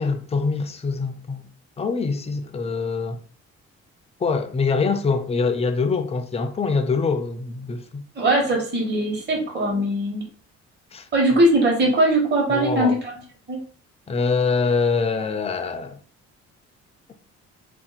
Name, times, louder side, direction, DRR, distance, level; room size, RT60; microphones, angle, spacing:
voice 1, 0.0-1.5 1.8-3.2 4.2-8.0 10.9-11.0 12.5-12.9 14.1-16.0, left 4 dB, 20° left, 0.4 m, -24 dB
voice 2, 8.1-10.2 11.1-13.0 13.5-13.6, right 1 dB, 35° right, 1.2 m, -20 dB
2.7 x 2.1 x 4.0 m
cardioid pair, 90°, 30 cm